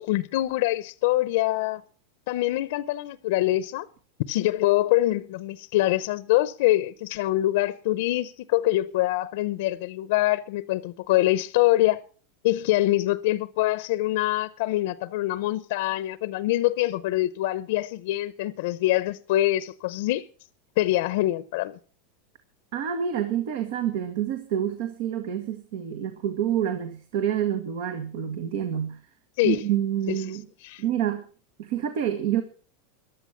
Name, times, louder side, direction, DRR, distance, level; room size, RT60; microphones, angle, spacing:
voice 1, 0.0-1.8 2.3-3.9 4.3-12.0 12.4-20.3 20.8-21.8 29.4-29.6 30.1-30.2 30.6-30.8, left 16 dB, 65° left, 0.7 m, -24 dB
voice 2, 22.7-29.0 29.4-30.4 30.8-31.2 31.6-32.4, right 10 dB, 65° right, 1.7 m, -27 dB
14.5 x 11.5 x 5.8 m
supercardioid pair, 135°, 0 cm